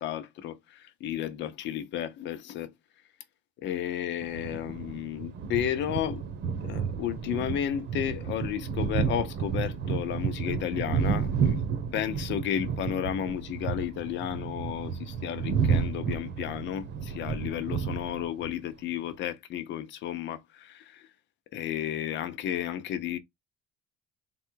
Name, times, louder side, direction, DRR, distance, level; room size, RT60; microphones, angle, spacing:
voice 1, 0.0-2.7 3.6-6.2 6.6-11.6 11.9-21.1 21.5-23.2, left 10 dB, 65° left, 0.8 m, -33 dB
sound 1, 4.2-18.5, right 6 dB, 55° right, 0.9 m, -31 dB
3.8 x 2.4 x 4.6 m
cardioid pair, 130°, 21 cm